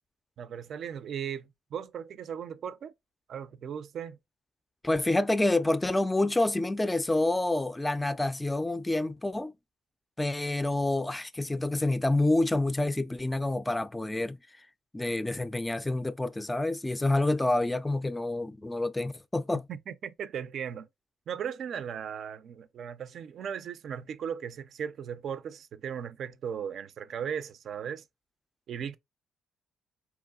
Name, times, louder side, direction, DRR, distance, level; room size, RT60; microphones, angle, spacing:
voice 1, 0.4-2.9 3.3-4.2 19.7-20.9 21.3-28.0 28.7-29.0, right 8 dB, 65° right, 0.4 m, -37 dB
voice 2, 4.8-9.5 10.2-14.4 14.9-19.6, left 2 dB, 15° left, 0.4 m, -28 dB
4.6 x 3.0 x 2.3 m
cardioid pair, 90°, 0 cm